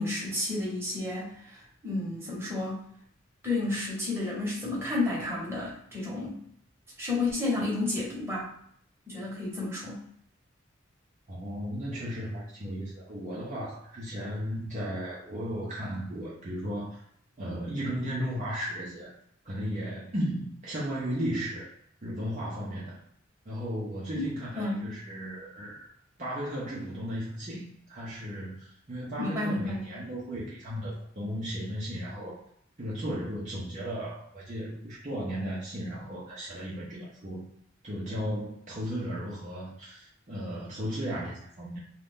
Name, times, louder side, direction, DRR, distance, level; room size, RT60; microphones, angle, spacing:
voice 1, 0.0-2.8 3.4-6.4 7.0-8.5 9.1-10.0 24.1-24.9 29.2-29.8, left 2 dB, 15° right, -6 dB, 1.1 m, -31 dB
voice 2, 11.3-17.0 17.4-19.1 19.4-21.7 22.0-23.0 23.5-25.9 26.2-32.4 32.8-37.5 37.8-41.8, equal, 40° right, -6 dB, 0.7 m, -35 dB
2.6 x 2.4 x 3.5 m, 0.67 s
head